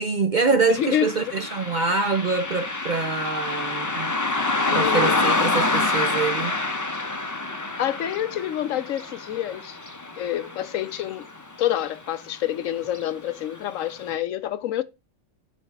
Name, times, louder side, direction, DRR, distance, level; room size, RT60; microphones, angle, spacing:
voice 1, 0.0-4.2 4.7-6.6, right 4 dB, 50° right, 0.6 m, -25 dB
voice 2, 0.7-1.2 4.6-5.2 7.8-9.8 10.2-11.3 11.6-14.8, left 11 dB, 75° left, 1.0 m, -27 dB
Car passing by, 0.7-11.5 11.8-11.9 12.8-13.0 13.5-13.6 14.1-14.2, left 2 dB, 20° left, 0.6 m, -27 dB
7.1 x 3.5 x 5.9 m
omnidirectional pair, 1.4 m